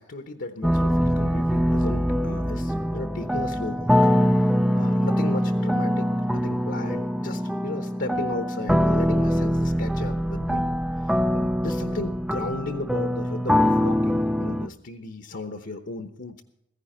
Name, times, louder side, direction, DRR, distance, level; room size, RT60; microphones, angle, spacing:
voice 1, 0.0-4.1 4.4-10.7 11.0-16.4, left 2 dB, 60° left, 7 dB, 1.0 m, -35 dB
sound 1, 0.6-14.7, equal, 5° right, 0.4 m, -23 dB
15.5 x 15.0 x 4.4 m, 0.81 s
head